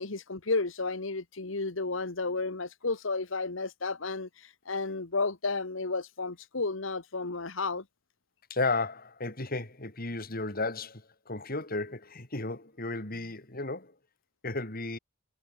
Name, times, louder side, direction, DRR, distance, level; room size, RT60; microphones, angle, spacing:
voice 1, 0.0-4.3 4.7-7.8, left 3 dB, 70° left, 1.5 m, -32 dB
voice 2, 8.5-13.9 14.4-15.0, left 3 dB, 45° left, 4.5 m, -34 dB
head